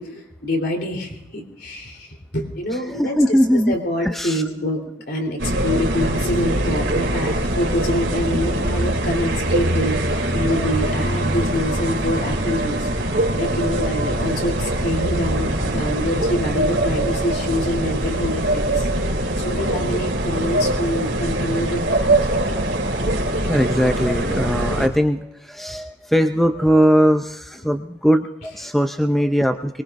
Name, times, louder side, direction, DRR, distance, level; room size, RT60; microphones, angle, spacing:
voice 1, 0.0-2.1 2.3-3.4 3.7-12.9 13.4-19.1 19.4-22.1, equal, 55° left, 2 dB, 3.6 m, -26 dB
voice 2, 2.9-3.8 4.0-4.4 23.2-29.8, equal, ahead, 6 dB, 0.4 m, -20 dB
sound 1, 5.4-24.9, right 1 dB, 75° right, 3.1 m, -22 dB
23.5 x 22.0 x 2.6 m, 0.91 s
head